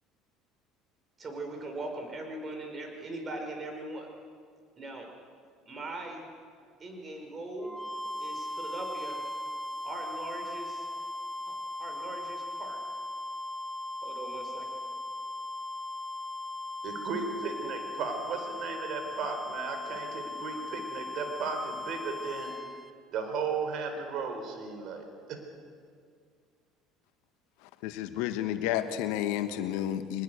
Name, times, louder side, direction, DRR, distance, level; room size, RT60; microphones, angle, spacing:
voice 1, 1.2-4.1 4.8-5.1 5.7-6.3 6.8-7.7 8.2-9.2 9.8-10.9 11.5-12.8 14.0-14.7, right 2 dB, 35° right, 3 dB, 5.9 m, -40 dB
sound 1, 7.6-22.9, left 2 dB, ahead, 1.3 m, -38 dB
voice 2, 16.8-22.5 23.1-25.4, right 5 dB, 60° right, 5 dB, 4.3 m, -35 dB
voice 3, 27.8-30.2, left 11 dB, 75° left, 10 dB, 1.5 m, -31 dB
22.5 x 21.0 x 6.7 m, 2.1 s
hypercardioid pair, 70°, 0 cm